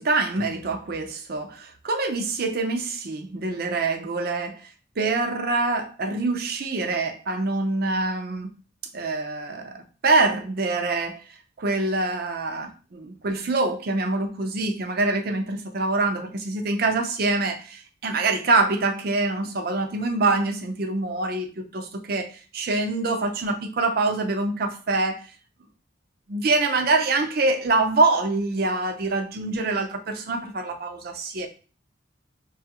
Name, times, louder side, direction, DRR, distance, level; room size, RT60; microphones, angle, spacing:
voice 1, 0.0-4.6 5.0-8.5 8.9-11.2 11.6-21.5 21.7-25.2 26.3-31.5, right 3 dB, 50° right, 6 dB, 0.5 m, -25 dB
4.8 x 2.3 x 2.8 m, 0.37 s
head